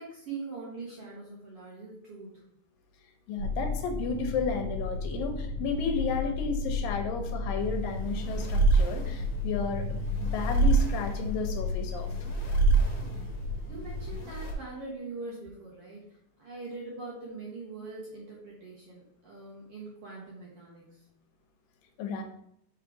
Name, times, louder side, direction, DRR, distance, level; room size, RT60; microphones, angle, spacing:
voice 1, 0.0-2.4 13.7-21.1, right 3 dB, 60° right, -5 dB, 1.6 m, -42 dB
voice 2, 3.3-12.1 22.0-22.2, left 5 dB, 80° left, 5 dB, 2.4 m, -33 dB
sound 1, 3.4-14.2, left 3 dB, 80° right, 1.9 m, -34 dB
sound 2, 7.6-14.5, right 3 dB, 60° left, 2.1 m, -28 dB
5.6 x 3.6 x 4.7 m, 0.73 s
omnidirectional pair, 4.1 m